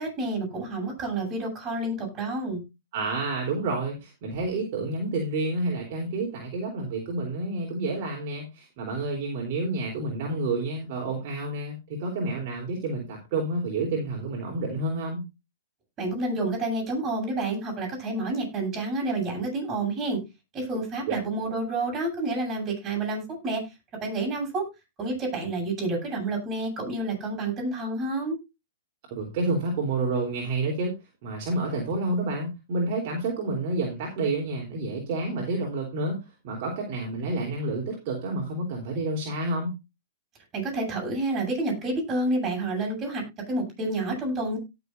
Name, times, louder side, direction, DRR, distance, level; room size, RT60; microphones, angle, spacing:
voice 1, 0.0-2.6 16.0-20.2 20.5-23.6 24.0-24.7 25.0-28.4 40.5-44.6, right 2 dB, 25° right, 0 dB, 8.0 m, -29 dB
voice 2, 2.9-15.2 21.1-21.2 29.1-31.0 31.2-36.2 36.4-39.8, right 2 dB, 50° right, -1 dB, 3.6 m, -29 dB
17.5 x 7.0 x 2.6 m, 0.24 s
hypercardioid pair, 125°, 0 cm